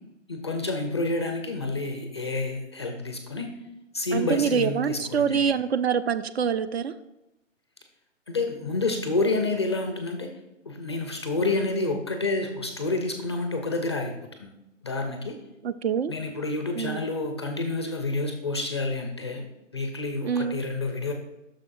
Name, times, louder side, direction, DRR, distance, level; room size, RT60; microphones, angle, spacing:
voice 1, 0.3-3.5 3.9-5.5 8.3-10.3 10.7-14.1 14.4-14.5 14.8-15.4 16.1-21.1, left 2 dB, 25° left, 4 dB, 0.4 m, -29 dB
voice 2, 4.1-6.9 15.6-16.1 16.8-17.0 20.2-20.6, right 7 dB, 55° right, 13 dB, 0.5 m, -25 dB
9.5 x 6.3 x 2.5 m, 0.95 s
figure-of-eight pair, 135°, 38 cm